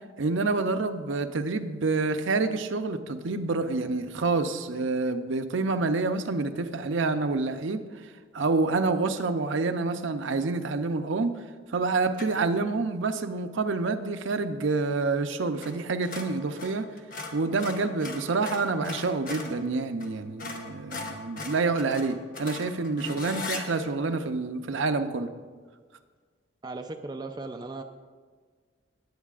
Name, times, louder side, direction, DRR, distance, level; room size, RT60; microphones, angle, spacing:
voice 1, 0.2-7.8 8.3-11.3 11.7-16.8 17.3-25.3, right 3 dB, 75° right, 8 dB, 0.6 m, -27 dB
sound 1, 12.1-12.5 15.6-15.8 16.0-19.6 20.0-20.1 20.4-23.6, left 3 dB, 45° left, 1.0 m, -38 dB
voice 2, 26.6-27.8, right 3 dB, 20° right, 4 dB, 0.4 m, -37 dB
18.5 x 8.2 x 2.4 m, 1.5 s
head